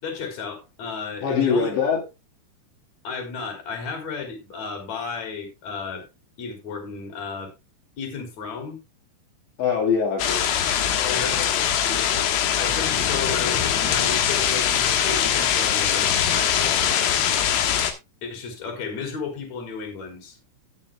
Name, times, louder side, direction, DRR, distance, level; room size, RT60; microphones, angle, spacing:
voice 1, 0.0-1.7 3.0-6.0 6.4-7.5 8.0-8.8 11.1-12.1 12.5-17.1 18.2-20.4, left 5 dB, 40° left, 4.4 m, -33 dB
voice 2, 1.2-2.0 9.6-10.6 10.9-11.5, left 6 dB, 65° left, 4.3 m, -24 dB
sound 1, 10.2-17.9, left 9 dB, 90° left, 4.1 m, -22 dB
18.0 x 7.1 x 2.3 m
omnidirectional pair, 5.7 m